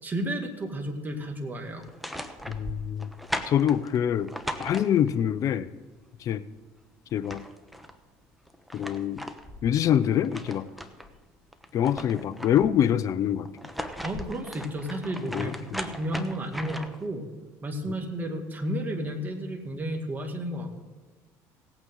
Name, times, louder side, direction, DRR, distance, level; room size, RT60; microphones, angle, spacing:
voice 1, 0.0-1.9 14.0-17.3 17.6-20.8, right 1 dB, 25° right, 3 dB, 2.2 m, -32 dB
sound 1, 1.8-5.3 6.8-6.9 7.1-8.0 8.5-11.1 11.5-12.9 13.5-17.1, equal, ahead, 1.0 m, -38 dB
voice 2, 2.5-3.1 3.5-4.3 4.6-5.7 6.2-6.4 7.1-7.4 8.7-9.2 9.6-10.7 11.7-13.5 15.3-15.6, left 10 dB, 45° left, 13 dB, 0.6 m, -25 dB
18.0 x 8.8 x 3.9 m, 1.3 s
supercardioid pair, 105°, 8 cm